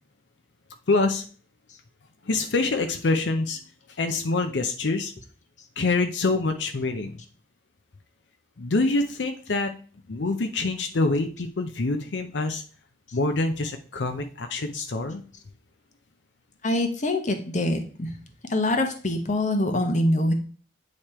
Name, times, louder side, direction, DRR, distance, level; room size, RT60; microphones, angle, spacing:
voice 1, 0.9-1.2 2.2-3.6 4.0-5.1 5.8-7.2 8.6-9.7 10.1-12.6 13.1-15.2, left 3 dB, 80° left, 7 dB, 0.6 m, -25 dB
voice 2, 16.6-18.2 18.5-20.3, left 1 dB, 40° left, 6 dB, 1.0 m, -24 dB
8.6 x 3.2 x 4.3 m, 0.41 s
head